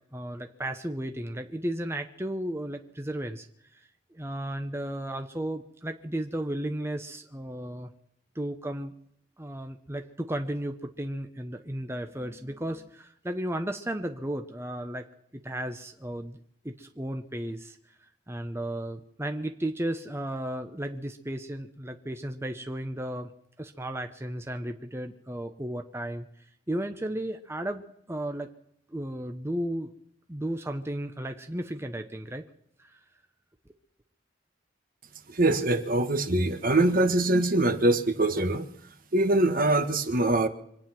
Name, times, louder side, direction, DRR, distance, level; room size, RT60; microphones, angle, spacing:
voice 1, 0.1-3.5 3.7-3.8 4.1-7.9 8.3-8.9 9.4-15.0 15.3-16.4 16.6-17.8 18.3-23.3 23.6-26.3 26.7-27.8 28.1-28.5 28.9-29.9 30.3-32.4 32.8-33.0, right 1 dB, 15° right, 5 dB, 0.9 m, -34 dB
voice 2, 35.3-38.7 39.1-40.5, right 2 dB, 50° right, 8 dB, 1.4 m, -23 dB
25.5 x 9.6 x 6.0 m, 0.71 s
head